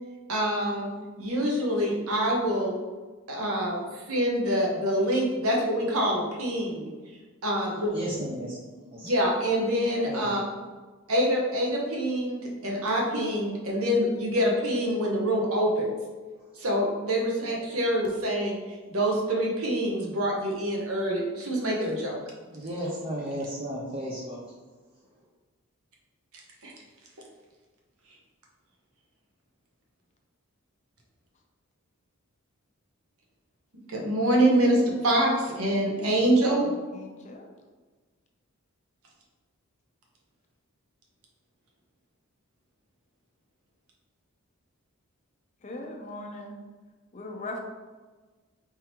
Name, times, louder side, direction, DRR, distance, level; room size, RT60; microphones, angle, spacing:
voice 1, 0.3-2.8 3.3-6.9 7.4-8.2 9.0-10.4 11.1-15.9 16.5-22.2 26.6-26.7 33.7-36.7, equal, 70° right, -2 dB, 1.0 m, -26 dB
voice 2, 7.9-9.1 10.1-10.4 22.5-24.5, equal, 25° right, -4 dB, 0.5 m, -34 dB
voice 3, 36.9-37.5 45.6-46.6 47.1-47.6, left 2 dB, 30° left, 2 dB, 0.5 m, -39 dB
4.5 x 3.6 x 2.9 m, 1.3 s
head